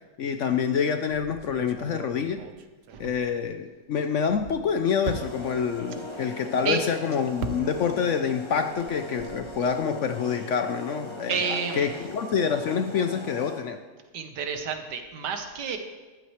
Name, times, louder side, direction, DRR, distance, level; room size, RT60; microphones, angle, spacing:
voice 1, 0.2-2.4 3.0-13.8, left 7 dB, 65° left, 8 dB, 0.7 m, -27 dB
sound 1, 1.1-3.8 4.1-8.2 8.5-9.8, right 6 dB, 60° right, 0.7 m, -41 dB
sound 2, 5.0-13.8, left 1 dB, 20° left, 0.8 m, -39 dB
voice 2, 11.3-12.1 14.1-15.8, right 6 dB, 75° right, 6 dB, 1.7 m, -30 dB
14.5 x 11.5 x 3.2 m, 1.3 s
omnidirectional pair, 1.8 m